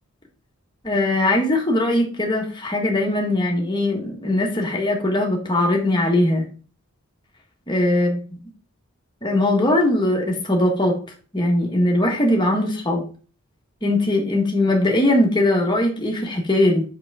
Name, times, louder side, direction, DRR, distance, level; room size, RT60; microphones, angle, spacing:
voice 1, 0.8-6.5 7.7-8.1 9.2-11.0 11.3-13.1 13.8-16.8, left 1 dB, 20° left, 0 dB, 1.5 m, -20 dB
6.1 x 5.9 x 3.6 m, 0.38 s
head